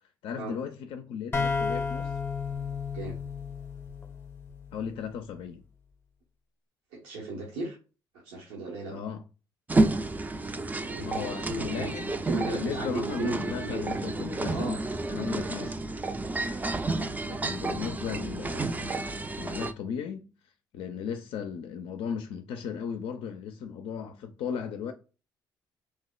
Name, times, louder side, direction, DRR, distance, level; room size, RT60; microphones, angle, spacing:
voice 1, 0.2-2.1 4.7-5.6 8.9-9.2 11.0-12.2 12.5-14.8 15.1-15.8 17.2-20.3 20.7-24.9, left 7 dB, 70° left, 0.4 m, -36 dB
sound 1, 1.3-5.0, left 5 dB, 25° left, 0.6 m, -33 dB
voice 2, 6.9-7.8 8.2-9.0 10.8-11.9 12.2-13.9 14.4-14.8 15.5-15.7 18.1-18.2, right 2 dB, 85° right, 0.8 m, -35 dB
sound 2, 9.7-19.7, right 2 dB, 20° right, 0.4 m, -30 dB
3.2 x 2.0 x 2.2 m
supercardioid pair, 60°, 9 cm